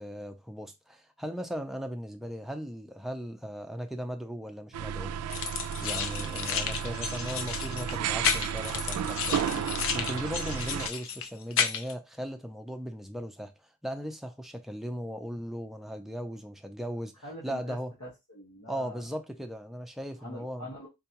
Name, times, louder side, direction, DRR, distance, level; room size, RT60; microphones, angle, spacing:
voice 1, 0.0-5.1 5.8-17.1 17.4-17.9 18.7-20.7, equal, ahead, 0.4 m, -38 dB
sound 1, 4.7-10.9, right 8 dB, 80° right, 0.3 m, -33 dB
sound 2, 5.3-11.9, left 7 dB, 65° left, 0.5 m, -32 dB
voice 2, 6.4-7.0 17.2-19.1 20.2-20.9, left 1 dB, 80° left, 1.3 m, -45 dB
4.5 x 2.3 x 2.8 m
head